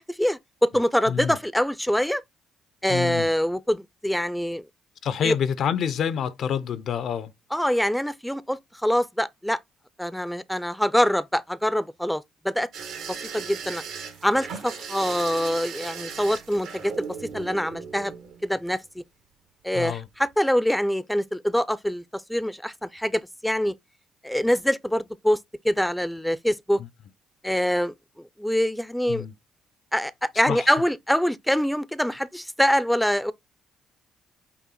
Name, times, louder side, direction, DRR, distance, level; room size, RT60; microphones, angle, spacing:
voice 1, 0.0-2.2 2.8-4.6 5.2-5.3 7.5-9.6 10.0-12.7 13.1-13.8 14.2-17.1 17.3-18.1 18.4-19.0 19.6-23.8 24.2-25.4 25.6-26.8 27.4-27.9 28.4-29.3 29.9-33.3, equal, 5° left, 0.4 m, -24 dB
voice 2, 2.9-3.3 5.0-7.3 19.7-20.1 26.8-26.9 29.1-29.3 30.5-30.7, left 8 dB, 65° left, 0.5 m, -27 dB
sound 1, 12.7-18.7 20.0-20.3 20.6-20.7, right 6 dB, 80° right, 1.1 m, -37 dB
5.7 x 2.1 x 3.8 m
supercardioid pair, 65°, 0 cm